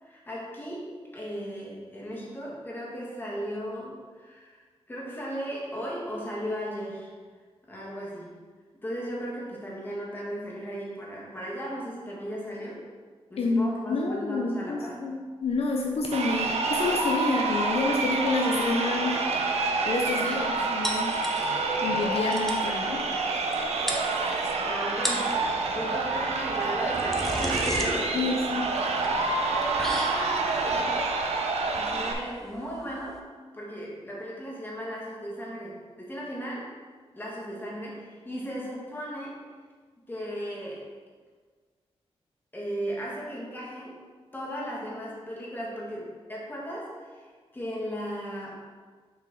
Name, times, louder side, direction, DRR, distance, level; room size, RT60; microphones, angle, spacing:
voice 1, 0.0-4.6 4.9-7.1 7.7-8.4 8.8-12.9 13.3-15.0 24.2-25.4 25.7-28.2 29.5-31.0 31.8-33.3 33.5-36.7 37.1-39.4 40.1-40.9 42.5-44.0 44.3-48.6, equal, 20° left, -5 dB, 1.8 m, -36 dB
voice 2, 13.4-19.2 19.8-21.1 21.8-23.0 28.1-28.7, left 3 dB, 70° left, 1 dB, 0.6 m, -28 dB
Crowd, 16.0-32.1, right 3 dB, 90° right, 0.7 m, -28 dB
sound 1, 20.8-21.7 22.0-22.1 22.3-22.7 23.5-23.6 23.9-24.5 24.9-25.4 26.5-33.2, equal, 5° left, 0.8 m, -35 dB
6.6 x 4.5 x 3.7 m, 1.5 s
wide cardioid pair, 115°, 11 cm